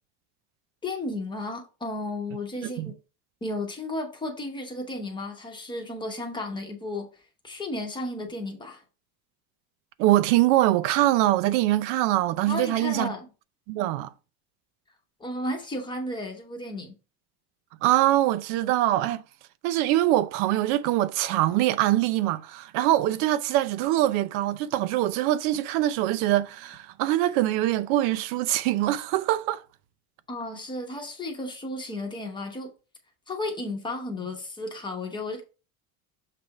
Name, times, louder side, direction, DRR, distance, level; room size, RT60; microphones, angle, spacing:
voice 1, 0.8-3.0 3.4-7.1 7.4-8.8 12.5-13.3 15.2-16.9 30.3-32.7 33.3-35.4, left 2 dB, 10° left, 0.9 m, -33 dB
voice 2, 10.0-13.1 13.7-14.1 17.8-19.2 19.6-29.6, right 14 dB, 90° right, 0.7 m, -23 dB
6.8 x 3.4 x 4.7 m
cardioid pair, 180°, 44 cm